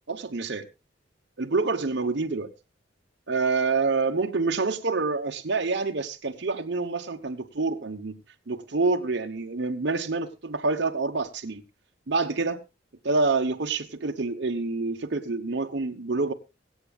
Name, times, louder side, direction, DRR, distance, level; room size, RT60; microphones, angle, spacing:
voice 1, 0.1-0.7 1.4-2.5 3.3-8.2 8.5-11.6 12.1-12.6 13.0-16.3, right 3 dB, 65° right, 1.0 m, -27 dB
24.0 x 8.2 x 2.4 m
head